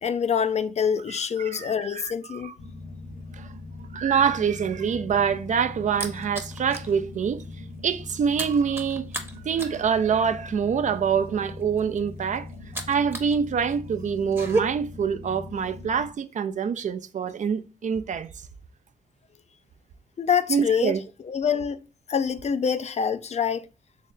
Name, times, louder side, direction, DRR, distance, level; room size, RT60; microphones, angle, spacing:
voice 1, 0.0-2.5 20.2-21.0 21.3-21.8 22.1-23.7, left 7 dB, 45° left, 0.4 m, -25 dB
voice 2, 1.1-2.5 3.4-3.5 3.9-7.4 7.8-9.1 9.4-12.5 12.9-18.3 20.5-21.0, right 7 dB, 55° right, 0.4 m, -25 dB
sound 1, 2.6-16.1, left 2 dB, 70° left, 0.7 m, -41 dB
sound 2, 5.1-6.9 7.3-7.5 7.8-13.3 13.6-14.6, right 2 dB, 15° right, 0.8 m, -33 dB
3.2 x 2.8 x 3.6 m
supercardioid pair, 40°, 15 cm